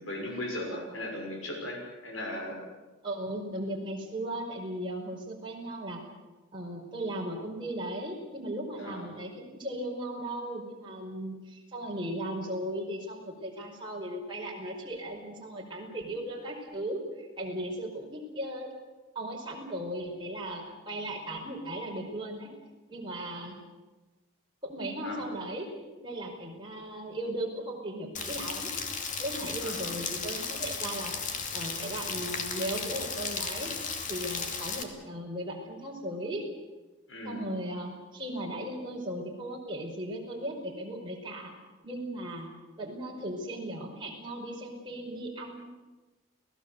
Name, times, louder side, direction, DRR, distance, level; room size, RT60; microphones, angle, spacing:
voice 1, 0.0-2.6 8.8-9.1 25.0-25.3 29.6-30.0 37.1-37.5, left 1 dB, 70° left, 2 dB, 6.3 m, -37 dB
voice 2, 3.0-6.0 6.5-18.7 19.1-22.5 22.9-23.6 24.6-28.7 29.2-31.2 31.5-33.8 34.1-36.5 37.2-41.5 41.8-42.5 42.8-45.7, right 1 dB, 25° right, -2 dB, 5.0 m, -37 dB
Rain, 28.2-34.8, left 5 dB, 35° left, 2.7 m, -35 dB
29.0 x 18.0 x 8.1 m, 1.2 s
head